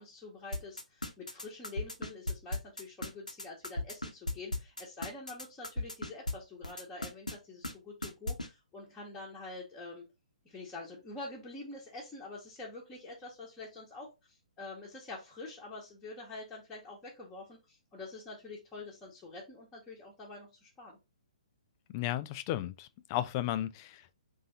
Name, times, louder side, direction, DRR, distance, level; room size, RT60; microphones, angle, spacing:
voice 1, 0.0-10.0 10.4-21.0, left 2 dB, 10° left, 1.0 m, -46 dB
sound 1, 0.5-6.3 6.6-7.4 7.6-7.7 8.0-8.5, left 2 dB, 80° left, 0.8 m, -35 dB
voice 2, 21.9-24.1, left 13 dB, 30° left, 0.3 m, -34 dB
4.2 x 2.7 x 3.7 m
figure-of-eight pair, 125°, 4 cm